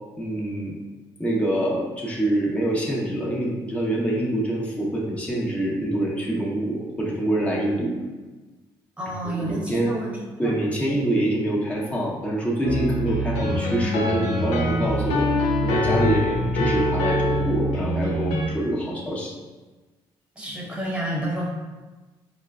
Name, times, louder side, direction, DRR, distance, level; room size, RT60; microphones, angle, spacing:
voice 1, 0.2-0.8 1.2-8.0 9.3-10.0 10.4-15.3 15.6-19.3, right 1 dB, 10° left, -4 dB, 1.0 m, -25 dB
voice 2, 9.0-10.5 20.4-21.5, right 1 dB, 10° right, -4 dB, 1.1 m, -30 dB
sound 1, 12.6-18.4, left 1 dB, 80° left, 0.6 m, -24 dB
4.6 x 2.2 x 2.4 m, 1.2 s
supercardioid pair, 70°, 10 cm